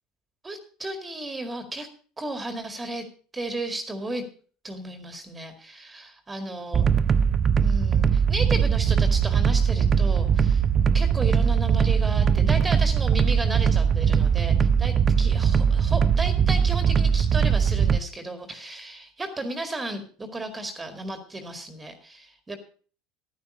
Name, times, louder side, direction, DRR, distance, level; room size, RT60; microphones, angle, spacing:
voice 1, 0.4-1.9 2.2-3.0 3.3-4.2 4.6-6.9 7.6-10.6 10.9-22.6, right 2 dB, 20° right, 7 dB, 2.0 m, -34 dB
sound 1, 6.7-18.0, right 7 dB, 35° right, 0.5 m, -21 dB
11.0 x 10.5 x 5.3 m, 0.42 s
hypercardioid pair, 75°, 0 cm